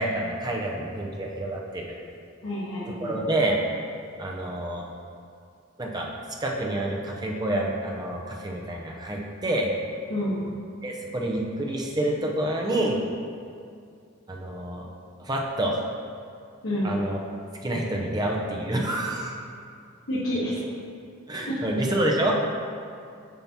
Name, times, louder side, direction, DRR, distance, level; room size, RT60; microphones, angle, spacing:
voice 1, 0.0-2.0 2.9-3.6 4.2-4.9 5.8-6.1 6.4-9.7 10.8-13.0 14.3-14.9 15.2-15.8 16.8-17.2 17.6-19.3 21.3-22.4, right 1 dB, 20° right, -1 dB, 0.6 m, -28 dB
voice 2, 2.4-3.2 10.1-10.4 16.6-16.9 20.1-20.5 21.5-21.6, equal, 85° left, -11 dB, 1.4 m, -28 dB
7.1 x 2.9 x 5.8 m, 2.4 s
head